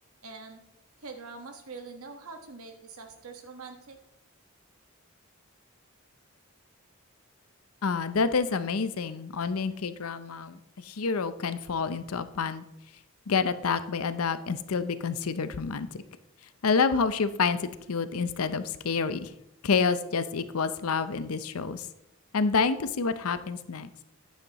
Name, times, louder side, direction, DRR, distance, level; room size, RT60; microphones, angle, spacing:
voice 1, 0.2-0.6 1.0-4.0, right 4 dB, 80° right, 5 dB, 1.4 m, -44 dB
voice 2, 7.8-12.6 13.3-16.0 16.6-19.3 19.6-21.9 22.3-23.9, left 5 dB, 80° left, 13 dB, 0.6 m, -28 dB
9.7 x 9.1 x 3.0 m, 0.86 s
head